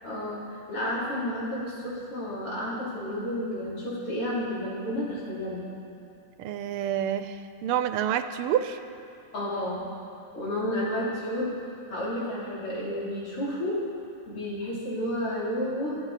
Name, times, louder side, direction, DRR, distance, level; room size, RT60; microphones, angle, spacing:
voice 1, 0.0-5.6 9.3-9.9 10.3-11.5 11.9-13.8 14.3-16.0, left 1 dB, 90° left, -7 dB, 4.3 m, -31 dB
voice 2, 6.4-8.8, right 10 dB, 90° right, 10 dB, 1.5 m, -28 dB
26.0 x 9.6 x 4.1 m, 2.6 s
omnidirectional pair, 2.4 m